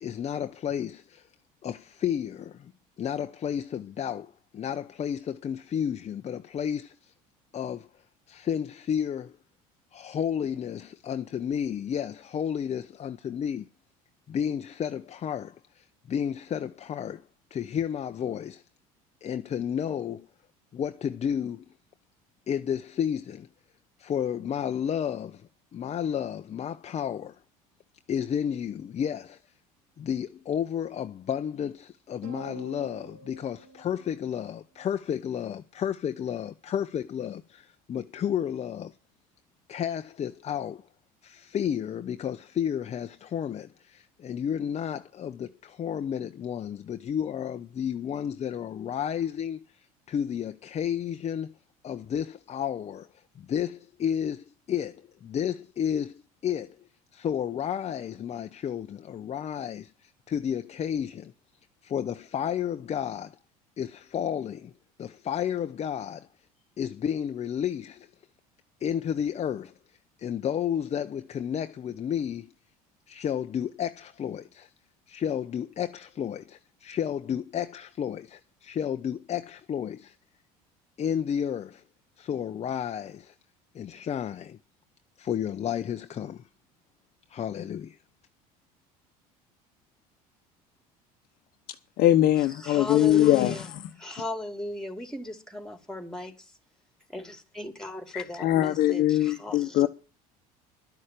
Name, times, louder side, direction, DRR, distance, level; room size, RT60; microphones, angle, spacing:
voice 1, 0.0-1.3 1.6-2.7 3.0-7.1 7.5-7.9 8.3-9.4 9.9-13.7 14.3-17.2 17.5-18.6 19.2-20.3 20.7-21.6 22.5-23.5 24.0-27.4 28.1-29.4 30.0-39.0 39.7-40.8 41.2-51.6 51.8-56.8 57.1-61.3 61.8-63.4 63.8-64.7 65.0-66.3 66.8-68.1 68.8-69.7 70.2-72.5 73.1-74.7 75.1-80.1 81.0-81.8 82.2-83.3 83.7-84.6 85.2-86.4 87.3-88.0, left 9 dB, 35° left, 0.8 m, -32 dB
sound 1, 32.2-34.8, right 4 dB, 70° right, 3.9 m, -47 dB
voice 2, 92.0-93.6 98.1-99.9, left 13 dB, 55° left, 1.1 m, -22 dB
voice 3, 92.6-93.7 94.0-96.5 97.1-99.9, left 1 dB, 5° left, 3.2 m, -36 dB
12.0 x 6.4 x 9.0 m
hypercardioid pair, 75°, 19 cm